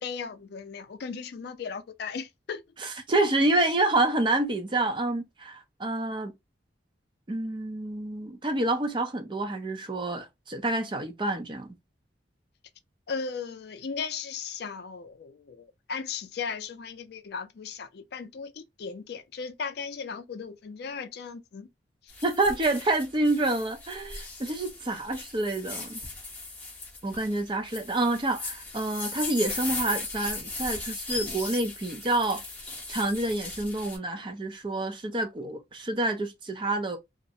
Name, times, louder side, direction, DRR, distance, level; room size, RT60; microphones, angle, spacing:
voice 1, 0.0-2.6 13.1-21.7 22.0-22.1, left 5 dB, 55° left, 0.4 m, -37 dB
voice 2, 2.8-6.3 7.3-11.8 22.2-26.0 27.0-32.4 32.9-37.0, right 2 dB, 25° right, 0.4 m, -28 dB
sound 1, 22.1-34.0, left 3 dB, 10° left, 0.8 m, -38 dB
2.4 x 2.0 x 2.6 m
head